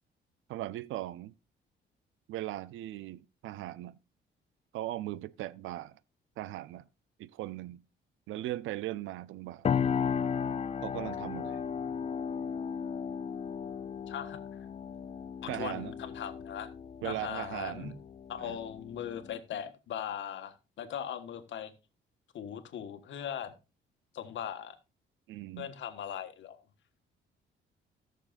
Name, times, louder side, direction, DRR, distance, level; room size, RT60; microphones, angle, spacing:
voice 1, 0.5-1.3 2.3-4.0 4.7-6.0 6.4-6.9 7.2-7.8 8.3-9.7 10.8-11.6 15.5-15.9 17.0-18.0 18.4-18.6 25.3-25.7, right 15 dB, 85° right, 0.5 m, -38 dB
sound 1, 9.6-19.4, left 7 dB, 30° left, 0.4 m, -35 dB
voice 2, 14.1-14.7 15.4-16.7 17.0-17.9 18.3-21.7 22.3-23.5 24.1-24.8 25.6-26.6, left 9 dB, 70° left, 1.5 m, -39 dB
17.5 x 6.7 x 2.5 m
cardioid pair, 90°, 20 cm